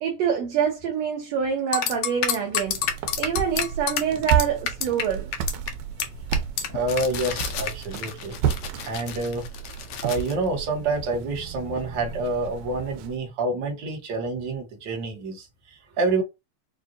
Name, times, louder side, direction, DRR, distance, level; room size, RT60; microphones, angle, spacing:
voice 1, 0.0-2.8 3.2-5.3, right 8 dB, 70° right, 1.9 m, -26 dB
sound 1, 1.7-5.0 5.3-5.7 6.0-6.1 6.3-10.3, left 8 dB, 80° left, 1.3 m, -29 dB
sound 2, 2.6-13.2, right 8 dB, 90° right, 2.1 m, -32 dB
voice 2, 6.7-8.3 8.8-9.5 10.0-16.2, right 2 dB, 55° right, 1.3 m, -28 dB
6.2 x 2.4 x 2.6 m
omnidirectional pair, 3.4 m